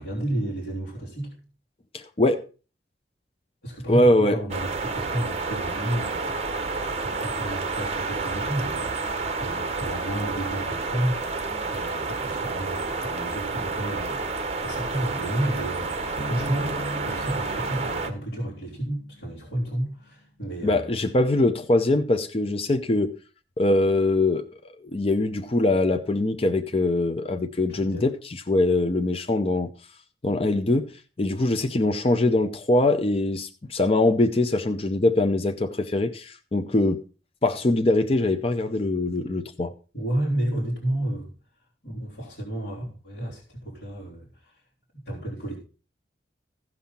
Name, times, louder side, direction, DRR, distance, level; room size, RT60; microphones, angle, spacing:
voice 1, 0.0-1.4 3.6-21.1 27.7-28.1 39.9-41.3 41.8-44.5 44.9-45.6, right 1 dB, 60° left, 3.5 m, -31 dB
voice 2, 1.9-2.4 3.9-4.4 20.6-23.1 23.6-24.4 24.8-28.1 28.5-29.7 30.2-30.9 31.2-37.0 37.4-39.7, left 2 dB, 35° left, 0.6 m, -22 dB
sound 1, 4.5-18.1, right 3 dB, 35° right, 1.0 m, -30 dB
sound 2, 16.2-19.9, equal, 85° left, 1.7 m, -39 dB
16.0 x 5.7 x 4.3 m
head